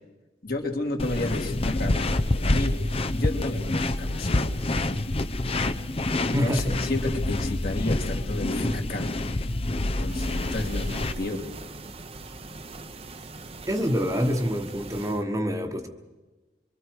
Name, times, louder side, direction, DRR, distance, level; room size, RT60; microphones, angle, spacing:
voice 1, 0.4-4.9 6.3-9.2 9.8-11.5, left 2 dB, 55° left, 1 dB, 2.8 m, -32 dB
sound 1, 1.0-11.1, left 2 dB, 35° left, 0.7 m, -27 dB
voice 2, 6.3-6.7 13.7-15.9, equal, 20° right, 4 dB, 1.3 m, -26 dB
sound 2, 10.0-15.2, right 3 dB, 35° right, 0.9 m, -42 dB
24.5 x 24.0 x 4.8 m, 1.2 s
head